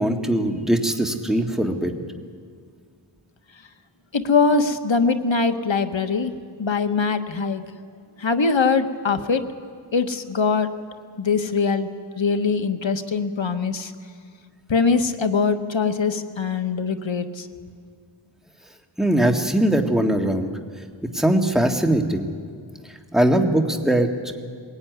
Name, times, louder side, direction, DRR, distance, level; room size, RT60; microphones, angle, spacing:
voice 1, 0.0-1.9 19.0-20.5 21.1-22.3 23.1-24.3, right 1 dB, ahead, 3 dB, 1.9 m, -21 dB
voice 2, 4.1-6.3 6.6-7.6 8.2-9.4 9.9-10.7 11.2-11.9 12.2-13.9 14.7-17.5, left 4 dB, 65° left, 8 dB, 1.3 m, -22 dB
21.0 x 18.0 x 9.5 m, 2.1 s
wide cardioid pair, 50°, 48 cm